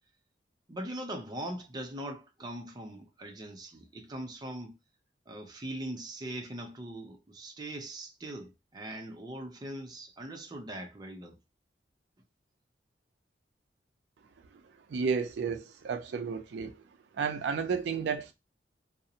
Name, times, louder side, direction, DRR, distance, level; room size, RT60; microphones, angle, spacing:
voice 1, 0.7-4.8 5.3-11.4, right 1 dB, 25° right, 0.5 m, -41 dB
voice 2, 14.9-16.8 17.2-18.3, right 5 dB, 80° right, 0.4 m, -32 dB
2.4 x 2.0 x 2.7 m
head